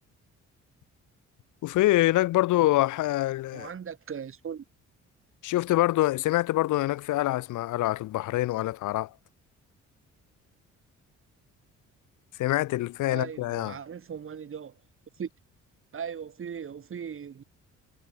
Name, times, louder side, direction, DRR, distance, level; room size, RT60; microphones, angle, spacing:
voice 1, 1.6-3.7 5.4-9.1 12.4-13.8, left 16 dB, 80° left, 0.9 m, -25 dB
voice 2, 3.5-4.6 13.1-14.8 15.2-15.3 15.9-17.4, right 7 dB, 45° right, 2.3 m, -38 dB
cardioid pair, 90°, 30 cm